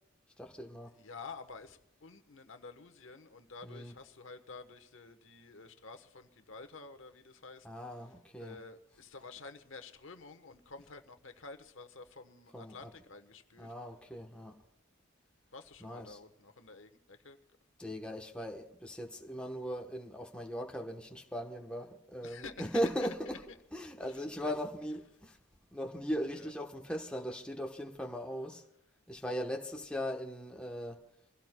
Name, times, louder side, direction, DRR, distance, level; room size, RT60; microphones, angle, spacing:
voice 1, 0.4-0.9 3.6-3.9 7.6-8.6 12.5-12.9 13.6-14.6 15.8-16.2 17.8-23.4 23.7-25.4 25.7-28.6 29.1-31.0, equal, 5° left, 1.0 m, -39 dB
voice 2, 0.9-7.7 8.4-13.7 15.5-17.4 22.2-23.1 24.0-24.5 26.3-26.5, left 4 dB, 70° left, 1.1 m, -50 dB
26.5 x 16.5 x 2.2 m
head